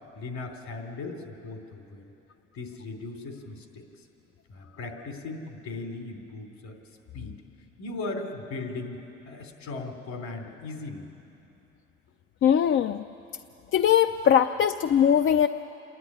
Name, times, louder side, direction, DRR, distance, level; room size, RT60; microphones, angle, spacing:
voice 1, 0.1-2.1 2.5-4.1 4.5-6.8 7.1-7.4 7.8-11.1, left 3 dB, 65° left, 4 dB, 3.3 m, -38 dB
voice 2, 12.4-13.0 13.7-15.5, left 9 dB, 45° left, 9 dB, 0.5 m, -21 dB
27.5 x 11.0 x 9.8 m, 2.9 s
supercardioid pair, 85°, 29 cm